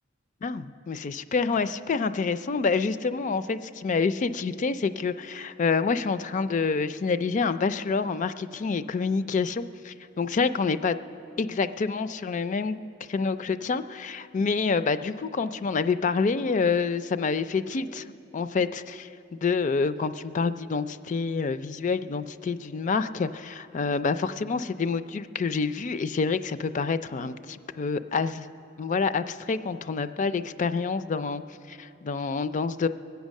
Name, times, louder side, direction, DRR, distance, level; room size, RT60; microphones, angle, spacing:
voice 1, 0.4-11.0 11.4-12.8 13.1-28.5 28.8-31.4 31.7-32.9, left 4 dB, 40° left, 13 dB, 0.4 m, -27 dB
22.5 x 8.1 x 6.4 m, 2.9 s
head